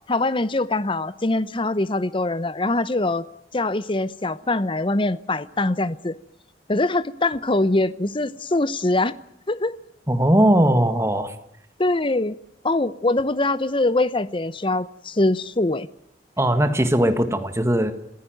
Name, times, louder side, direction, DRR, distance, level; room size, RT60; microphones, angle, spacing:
voice 1, 0.1-3.2 3.5-6.2 6.7-9.1 9.5-9.7 11.8-12.4 12.6-15.9, left 2 dB, 30° left, 16 dB, 0.9 m, -23 dB
voice 2, 10.1-11.3 16.4-17.9, right 1 dB, 15° right, 9 dB, 1.7 m, -19 dB
26.5 x 16.5 x 9.2 m, 0.76 s
head